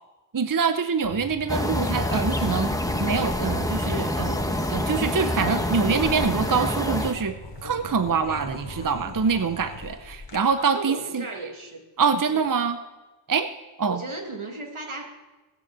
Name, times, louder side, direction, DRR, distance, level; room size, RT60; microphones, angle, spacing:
voice 1, 0.3-4.4 4.7-7.3 7.6-11.2 12.0-12.8 13.3-13.5 13.8-14.0, right 5 dB, 40° right, 10 dB, 0.7 m, -25 dB
sound 1, 1.0-9.9, equal, 80° left, 3.1 m, -42 dB
sound 2, 1.5-7.1, left 1 dB, 5° left, 1.1 m, -26 dB
sound 3, 2.4-10.4, left 3 dB, 60° left, 1.6 m, -42 dB
voice 2, 10.6-11.8 12.3-12.4 13.9-15.1, right 2 dB, 80° right, 2 dB, 2.2 m, -36 dB
18.5 x 6.8 x 7.4 m, 1.1 s
wide cardioid pair, 45°, 48 cm